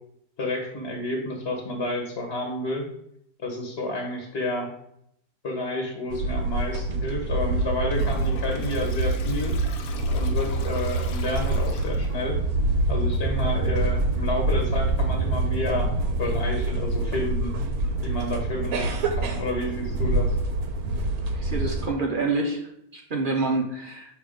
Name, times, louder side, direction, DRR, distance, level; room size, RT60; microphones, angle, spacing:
voice 1, 0.4-2.8 3.4-4.7 5.4-9.6 10.1-12.4 12.9-15.9 16.2-17.6 18.0-20.3, left 1 dB, 45° left, 1 dB, 1.2 m, -30 dB
sound 1, 6.1-21.9, right 2 dB, 65° right, 1.2 m, -26 dB
Toilet flush, 7.9-12.3, left 6 dB, 70° left, 1.1 m, -40 dB
sound 2, 13.1-21.2, right 8 dB, 85° right, 1.2 m, -42 dB
voice 2, 21.3-24.2, right 3 dB, 45° right, 1 dB, 0.7 m, -27 dB
6.3 x 3.3 x 5.0 m, 0.73 s
omnidirectional pair, 1.7 m